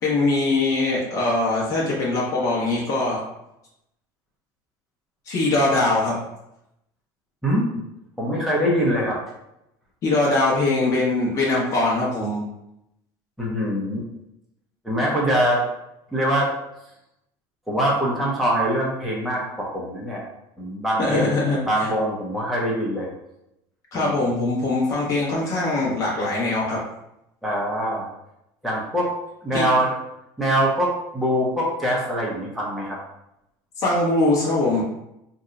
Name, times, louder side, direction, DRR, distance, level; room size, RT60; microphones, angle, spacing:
voice 1, 0.0-3.2 5.3-6.2 10.0-12.4 21.0-21.9 23.9-26.8 29.5-29.7 33.8-34.8, left 2 dB, 35° left, -5 dB, 1.1 m, -22 dB
voice 2, 8.2-9.2 13.4-14.1 14.8-15.6 16.1-16.5 17.7-20.2 20.6-23.1 23.9-24.2 27.4-28.1 28.6-29.1 29.4-29.9 30.4-33.0, equal, ahead, -5 dB, 0.5 m, -23 dB
2.7 x 2.2 x 3.7 m, 0.84 s
cardioid pair, 170°, 9 cm